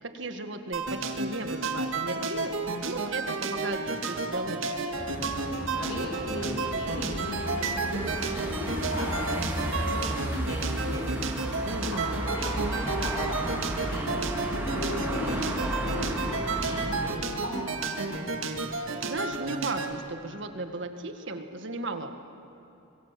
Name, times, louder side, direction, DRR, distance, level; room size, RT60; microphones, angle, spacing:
voice 1, 0.0-4.8 11.6-12.3 18.6-22.1, right 2 dB, 65° right, 6 dB, 1.9 m, -36 dB
sound 1, 0.7-19.9, right 3 dB, 80° right, 2.0 m, -32 dB
sound 2, 4.9-17.1, right 1 dB, 10° right, 2.6 m, -33 dB
voice 2, 5.8-11.1 11.9-14.2 14.6-18.3, equal, 80° left, -2 dB, 5.1 m, -37 dB
25.0 x 22.0 x 7.6 m, 3.0 s
head